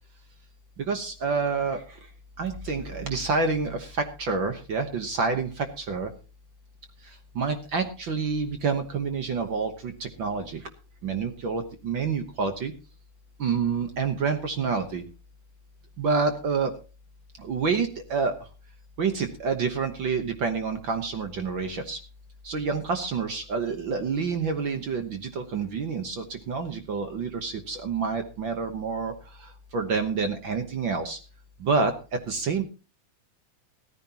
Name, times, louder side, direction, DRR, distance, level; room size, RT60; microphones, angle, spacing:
voice 1, 0.8-1.8 2.4-3.9 4.2-6.1 7.3-10.6 11.0-12.7 13.4-15.0 16.0-16.7 17.4-18.3 19.0-22.0 22.4-29.1 29.7-31.2 31.6-31.9 32.3-32.6, right 5 dB, 55° right, 7 dB, 1.5 m, -28 dB
16.5 x 14.0 x 2.9 m, 0.32 s
omnidirectional pair, 3.3 m